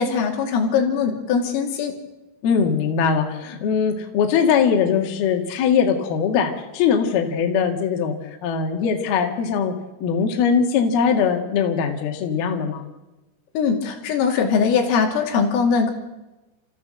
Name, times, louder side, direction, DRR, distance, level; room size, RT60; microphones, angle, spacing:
voice 1, 0.0-1.9 13.6-15.9, left 6 dB, 85° left, 2 dB, 5.2 m, -21 dB
voice 2, 2.4-8.2 8.4-9.7 10.0-12.8, left 6 dB, 60° left, 3 dB, 3.4 m, -21 dB
29.5 x 14.5 x 7.7 m, 1.1 s
omnidirectional pair, 5.8 m